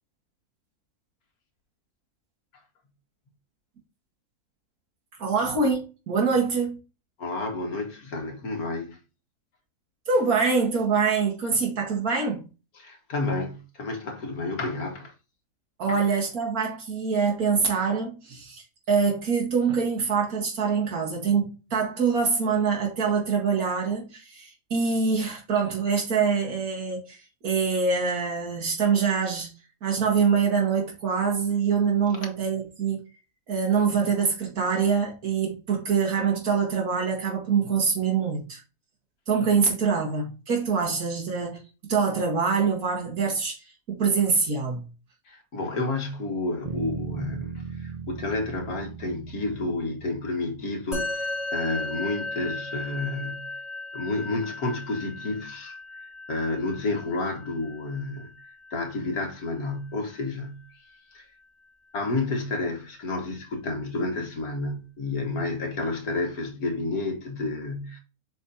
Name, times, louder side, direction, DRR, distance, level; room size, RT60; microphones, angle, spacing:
voice 1, 5.2-6.8 10.1-12.5 15.8-27.2 27.4-29.5 29.8-33.0 33.5-38.6 39.3-44.8, right 5 dB, 70° right, 2.0 m, -25 dB
voice 2, 7.2-9.0 12.8-15.1 15.9-16.0 45.3-53.5 53.9-55.8 56.3-58.3 58.7-60.6 61.1-61.2 61.9-68.0, left 2 dB, 75° left, 1.9 m, -30 dB
Bass guitar, 46.7-51.0, right 6 dB, 45° right, 0.5 m, -37 dB
Musical instrument, 50.9-60.5, left 2 dB, ahead, 3.0 m, -36 dB
7.5 x 4.5 x 2.8 m
omnidirectional pair, 1.6 m